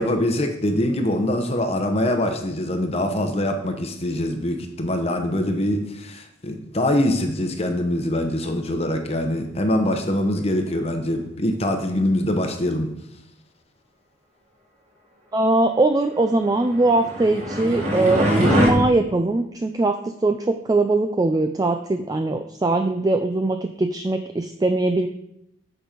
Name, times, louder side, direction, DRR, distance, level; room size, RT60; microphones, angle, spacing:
voice 1, 0.0-12.9, left 1 dB, 35° left, 4 dB, 0.8 m, -23 dB
voice 2, 15.3-25.1, right 2 dB, 20° right, 7 dB, 0.3 m, -21 dB
sound 1, 16.8-18.7, equal, 35° right, 1.8 m, -22 dB
8.9 x 5.4 x 5.1 m, 0.80 s
head